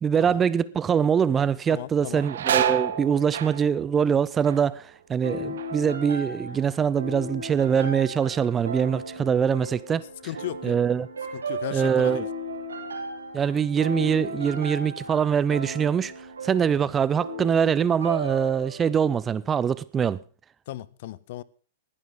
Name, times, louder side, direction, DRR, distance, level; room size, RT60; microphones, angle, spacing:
voice 1, 0.0-10.0 10.6-11.1 11.7-12.2 13.3-16.1 16.4-20.2, right 7 dB, 20° right, 0.5 m, -23 dB
sound 1, 0.9-1.3 1.7-7.3 7.5-8.2 8.6-11.6 11.9-12.0 13.0-13.2 13.6-14.7 15.2-15.4 16.0-16.6 16.9-18.1, right 9 dB, 65° right, 1.0 m, -33 dB
voice 2, 1.7-2.2 10.2-10.8 11.3-12.3 20.7-21.4, left 14 dB, 55° left, 0.6 m, -36 dB
sound 2, 5.2-18.9, right 1 dB, 80° right, 3.0 m, -36 dB
20.0 x 11.0 x 3.7 m
figure-of-eight pair, 105°, 0 cm